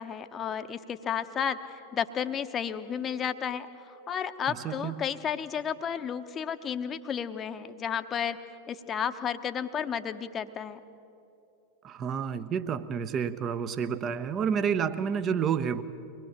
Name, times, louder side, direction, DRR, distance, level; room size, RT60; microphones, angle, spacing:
voice 1, 0.0-1.6 1.9-3.7 4.1-8.4 8.7-10.8, left 8 dB, 25° left, 10 dB, 1.0 m, -32 dB
voice 2, 4.5-4.9 11.8-15.8, right 7 dB, 30° right, 12 dB, 0.9 m, -29 dB
24.0 x 19.5 x 7.2 m, 2.7 s
figure-of-eight pair, 90°, 0 cm